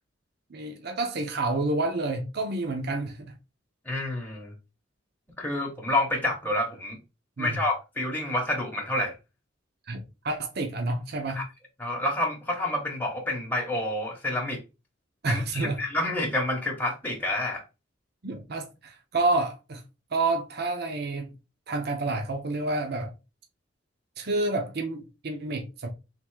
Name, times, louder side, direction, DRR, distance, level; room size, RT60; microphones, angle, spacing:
voice 1, 0.5-3.3 7.4-7.7 9.9-11.4 15.2-15.8 18.2-19.8 20.1-21.3 21.7-23.1 24.2-25.9, right 2 dB, 55° right, 0.7 m, -29 dB
voice 2, 3.9-4.5 5.4-7.0 7.4-9.2 11.3-11.4 11.8-14.6 15.3-17.6, left 1 dB, 10° left, 0.9 m, -28 dB
3.6 x 2.6 x 4.5 m
head